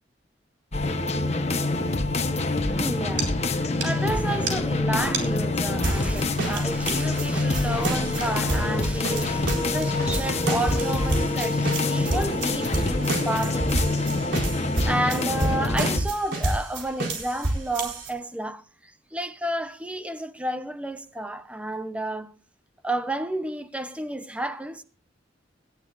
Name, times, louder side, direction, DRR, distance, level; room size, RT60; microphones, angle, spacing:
sound 1, 0.7-16.0, left 2 dB, 35° left, 1.2 m, -26 dB
voice 1, 2.6-14.2 14.8-22.3 22.8-24.8, right 1 dB, 5° right, 0.9 m, -31 dB
sound 2, 3.2-3.3 3.5-3.6 3.8-3.9 4.5-4.6 5.1-5.2 5.8-18.1, right 2 dB, 80° right, 4.2 m, -30 dB
sound 3, 7.7-13.4, right 2 dB, 60° right, 1.4 m, -41 dB
18.5 x 12.0 x 2.6 m
head